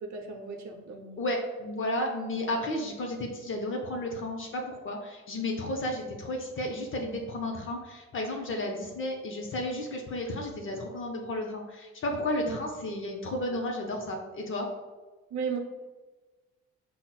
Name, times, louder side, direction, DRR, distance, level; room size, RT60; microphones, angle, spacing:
voice 1, 0.0-1.1 12.4-12.6 15.3-15.6, right 5 dB, 70° right, 3 dB, 0.6 m, -35 dB
voice 2, 1.2-14.7, left 1 dB, 45° left, 1 dB, 0.6 m, -33 dB
5.6 x 2.0 x 2.2 m, 1.2 s
cardioid pair, 90°, 30 cm